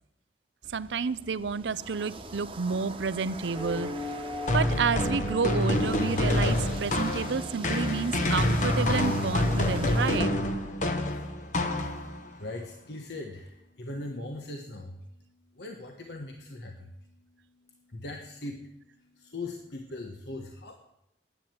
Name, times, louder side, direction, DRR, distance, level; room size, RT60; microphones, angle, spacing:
sound 1, 0.6-10.2, right 2 dB, 30° right, 1.2 m, -43 dB
voice 1, 0.7-3.9 4.5-10.3, right 5 dB, 80° right, 17 dB, 0.5 m, -30 dB
sound 2, 3.6-8.5, left 2 dB, 10° left, 1.3 m, -40 dB
sound 3, 4.5-12.3, left 1 dB, 45° left, 1.1 m, -27 dB
voice 2, 11.0-12.1 12.4-15.0 15.5-16.9 17.9-20.8, left 2 dB, 65° left, 3 dB, 1.3 m, -40 dB
11.0 x 9.0 x 7.6 m, 0.82 s
head